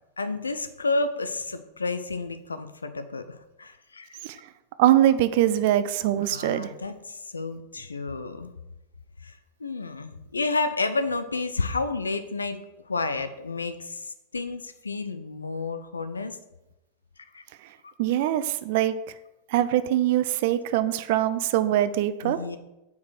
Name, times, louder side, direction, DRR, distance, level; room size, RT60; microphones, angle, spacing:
voice 1, 0.2-4.2 6.3-8.5 9.2-12.6 12.9-16.4 17.3-17.4 17.8-17.9 22.2-22.6, left 3 dB, 75° left, 11 dB, 0.5 m, -31 dB
voice 2, 4.8-6.7 18.0-18.9 19.5-22.4, right 12 dB, 50° right, 13 dB, 0.4 m, -23 dB
5.6 x 4.7 x 6.2 m, 0.94 s
figure-of-eight pair, 90°, 0 cm